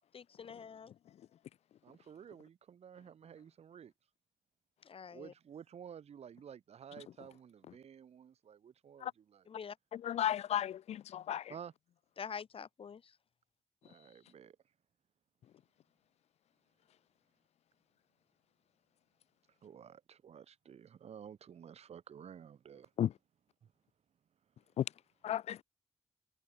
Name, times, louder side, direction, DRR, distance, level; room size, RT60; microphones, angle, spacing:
voice 1, 0.1-0.9 4.8-5.3 9.5-9.8 12.2-13.1, left 6 dB, 60° left, 0.9 m, -46 dB
voice 2, 1.8-3.9 5.1-9.5 11.5-11.7 13.8-14.6 19.6-22.9 23.6-23.7, right 8 dB, 80° right, 4.2 m, -52 dB
voice 3, 9.9-11.5 23.0-23.1 24.8-24.9 25.2-25.6, left 11 dB, 85° left, 0.5 m, -34 dB
cardioid pair, 55°, 11 cm